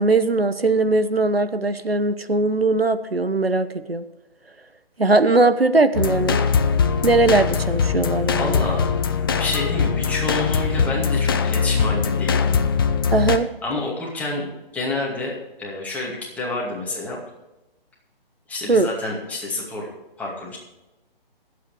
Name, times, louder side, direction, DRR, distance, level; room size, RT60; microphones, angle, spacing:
voice 1, 0.0-4.0 5.0-6.4 7.0-8.6 13.1-13.5 18.7-18.9, right 3 dB, 85° right, 11 dB, 1.0 m, -19 dB
sound 1, 5.9-13.4, left 6 dB, 25° left, 0.6 m, -21 dB
voice 2, 8.3-8.9 9.4-12.5 13.6-17.2 18.5-19.9 20.2-20.6, left 2 dB, 5° left, -4 dB, 2.3 m, -28 dB
23.5 x 8.3 x 3.4 m, 1.0 s
figure-of-eight pair, 140°, 29 cm